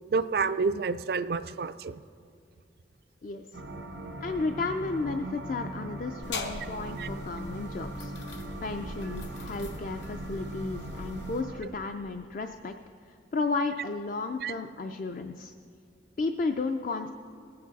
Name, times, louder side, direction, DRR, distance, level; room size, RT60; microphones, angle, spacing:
voice 1, 0.1-2.0 7.0-7.1 14.4-14.5, right 4 dB, 55° right, 13 dB, 0.3 m, -29 dB
voice 2, 3.2-3.6 4.2-8.1 8.6-12.7 13.1-15.5 16.2-17.1, left 3 dB, 45° left, 6 dB, 0.4 m, -33 dB
sound 1, 3.5-11.6, right 1 dB, 90° right, 1.3 m, -40 dB
sound 2, 6.2-11.4, left 2 dB, 75° left, 1.1 m, -41 dB
20.0 x 8.6 x 4.0 m, 2.5 s
head